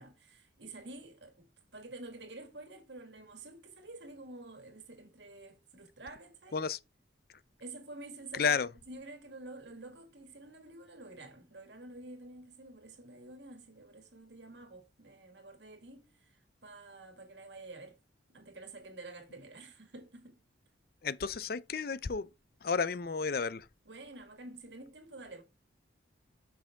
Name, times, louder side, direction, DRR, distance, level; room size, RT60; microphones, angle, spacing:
voice 1, 0.0-6.6 7.6-8.6 8.9-16.4 16.6-18.0 18.3-20.4 23.9-25.4, right 2 dB, 70° right, 1.9 m, -49 dB
voice 2, 21.0-22.3 22.6-23.6, left 5 dB, 50° left, 0.5 m, -31 dB
6.7 x 6.0 x 3.6 m
head